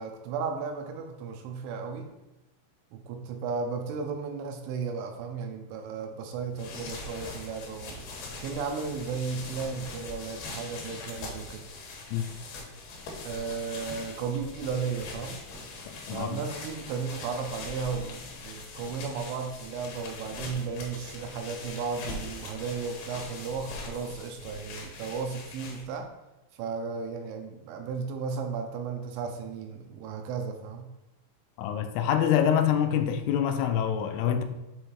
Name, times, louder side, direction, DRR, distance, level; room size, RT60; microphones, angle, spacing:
voice 1, 0.0-2.1 2.9-8.1 8.4-11.6 13.3-15.4 16.1-26.1 26.5-30.9, right 5 dB, 80° right, 2.9 m, -34 dB
sound 1, 6.4-26.0, left 3 dB, 65° left, 2.7 m, -42 dB
voice 2, 15.9-16.4 31.6-34.4, left 9 dB, 85° left, 3.0 m, -26 dB
8.0 x 3.3 x 4.6 m
omnidirectional pair, 5.6 m